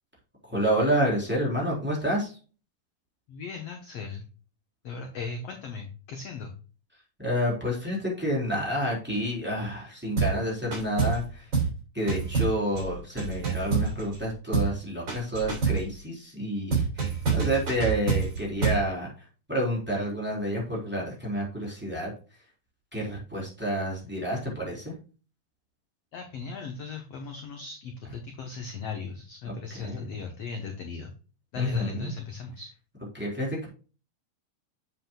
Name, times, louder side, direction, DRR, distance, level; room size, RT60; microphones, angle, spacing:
voice 1, 0.4-2.3 7.2-11.5 11.9-22.1 22.9-24.9 29.4-30.1 31.5-32.1 33.1-33.7, equal, 5° right, -4 dB, 3.2 m, -29 dB
voice 2, 3.3-4.2 4.8-6.5 26.1-31.1 31.5-32.7, left 5 dB, 65° left, 4 dB, 1.7 m, -38 dB
sound 1, 10.2-10.4 10.7-11.3 11.5-11.8 12.1-14.2 14.5-14.8 15.1-15.9 16.7-18.9, right 5 dB, 35° right, 3.4 m, -27 dB
7.8 x 7.7 x 2.3 m, 0.36 s
omnidirectional pair, 3.9 m